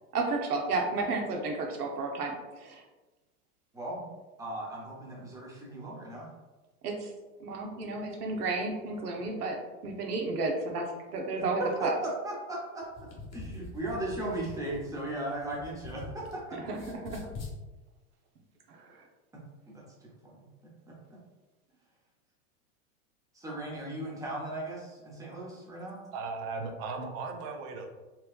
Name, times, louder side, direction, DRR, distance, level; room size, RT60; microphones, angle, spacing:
voice 1, 0.1-2.8 6.8-7.1 7.4-11.9 16.5-17.2 18.7-19.0, right 3 dB, 80° right, 2 dB, 0.9 m, -32 dB
voice 2, 3.7-4.1 4.4-6.3 11.6-12.9 13.3-16.6 19.3-19.4 20.2-21.2 23.3-26.0, right 1 dB, 10° right, -4 dB, 0.8 m, -37 dB
sound 1, 12.8-16.3 16.6-17.6, left 3 dB, 35° left, 1.0 m, -44 dB
voice 3, 26.1-27.9, right 4 dB, 35° right, 4 dB, 0.5 m, -37 dB
4.3 x 2.3 x 2.4 m, 1.2 s
hypercardioid pair, 115°, 45 cm